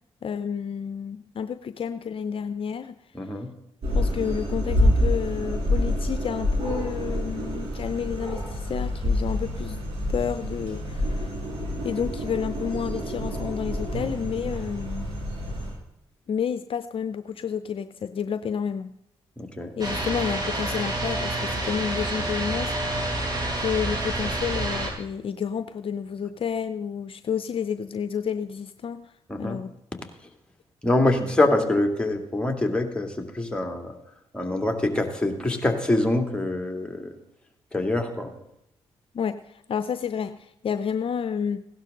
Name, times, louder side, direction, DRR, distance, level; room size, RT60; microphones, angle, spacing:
voice 1, 0.2-3.0 3.9-9.8 10.1-11.3 11.8-15.1 16.3-18.9 19.8-23.1 23.6-29.1 29.4-29.7 39.1-41.6, left 7 dB, 55° left, 11 dB, 0.6 m, -30 dB
voice 2, 3.1-3.5 19.4-19.7 29.3-29.6 30.8-33.9 34.3-37.1 37.7-38.3, left 2 dB, 10° left, 3 dB, 2.7 m, -25 dB
sound 1, 3.8-15.7, left 1 dB, 65° right, 5.6 m, -27 dB
sound 2, 19.8-24.9, right 1 dB, 40° right, 4.5 m, -28 dB
16.5 x 12.0 x 3.9 m, 0.82 s
supercardioid pair, 55°, 11 cm